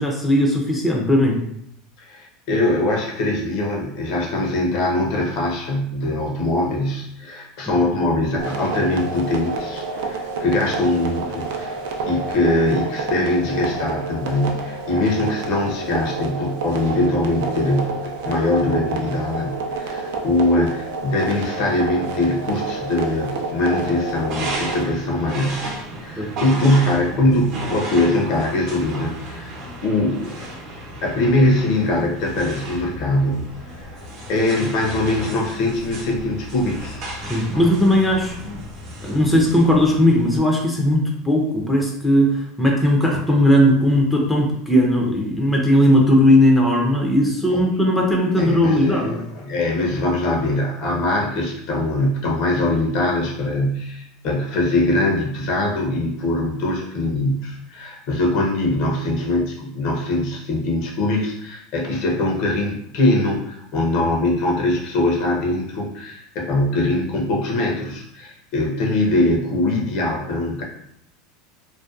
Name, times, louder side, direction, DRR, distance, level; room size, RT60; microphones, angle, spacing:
voice 1, 0.0-1.4 7.6-7.7 26.2-26.3 37.2-38.4 39.0-49.2, equal, 5° left, -1 dB, 0.4 m, -17 dB
voice 2, 2.0-11.8 12.1-18.0 18.2-29.5 29.8-30.4 31.0-33.8 34.3-37.0 37.5-37.6 47.5-47.6 48.4-70.6, left 1 dB, 55° left, 0 dB, 0.6 m, -22 dB
sound 1, 8.4-24.8, right 3 dB, 75° right, 0.4 m, -29 dB
sound 2, 24.1-40.4, right 1 dB, 50° right, 0.7 m, -34 dB
2.5 x 2.1 x 2.4 m, 0.74 s
supercardioid pair, 130°, 0 cm